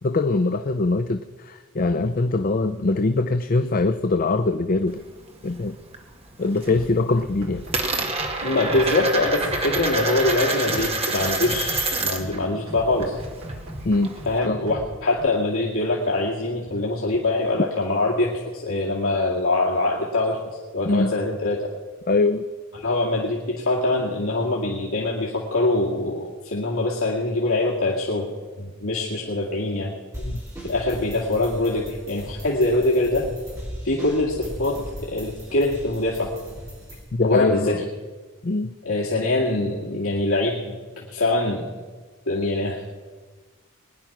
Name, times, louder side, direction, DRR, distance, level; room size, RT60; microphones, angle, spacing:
voice 1, 0.0-5.0 5.4-5.8 6.4-7.6 13.8-14.1 14.5-14.6 20.8-21.1 22.1-22.5 30.2-30.4 37.1-37.8 38.4-38.7, left 3 dB, 40° left, 9 dB, 0.5 m, -22 dB
Coin (dropping), 4.9-6.0 6.3-6.8 7.1-12.4 12.7-14.4, right 2 dB, 30° right, 1.8 m, -27 dB
sound 1, 6.4-6.9 7.2-8.9 9.2-10.9 11.2-12.9 13.2-14.9 15.2-15.3, right 1 dB, 80° right, 2.9 m, -38 dB
voice 2, 8.4-13.1 14.3-21.7 22.8-28.3 28.6-29.9 30.6-33.3 33.8-36.3 37.2-37.8 38.8-41.7 42.3-42.8, left 2 dB, 80° left, -4 dB, 2.2 m, -24 dB
sound 2, 30.1-37.0, equal, 15° right, 5.7 m, -37 dB
21.5 x 10.5 x 6.0 m, 1.4 s
head